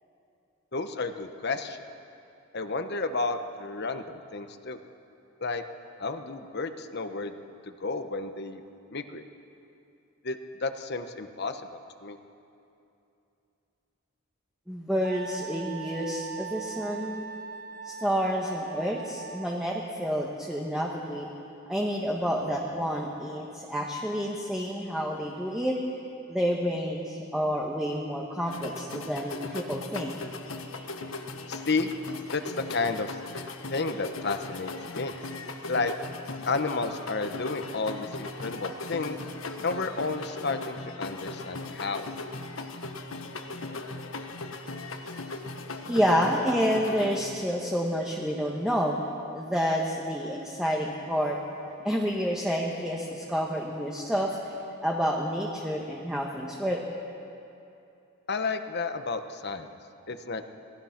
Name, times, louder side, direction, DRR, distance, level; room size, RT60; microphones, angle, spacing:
voice 1, 0.7-1.8 2.5-4.0 4.3-4.8 5.4-5.6 6.0-7.3 7.8-8.6 8.9-9.2 10.2-11.6 12.0-12.2 31.5-31.9 32.3-32.4 32.7-33.2 33.7-35.1 35.7-35.9 36.5-39.2 39.6-42.1 58.3-59.7 60.1-60.4, left 3 dB, 50° left, 8 dB, 1.1 m, -31 dB
voice 2, 14.7-17.2 17.8-21.3 21.7-25.8 26.3-30.1 45.9-49.0 49.3-51.4 51.8-54.6 54.8-56.8, equal, 5° right, -2 dB, 1.4 m, -29 dB
Wind instrument woodwind instrument, 15.0-20.0, right 6 dB, 45° right, 1.0 m, -41 dB
sound 1, 28.5-47.2, left 2 dB, 75° left, 1.5 m, -38 dB
26.5 x 18.5 x 5.9 m, 2.8 s
head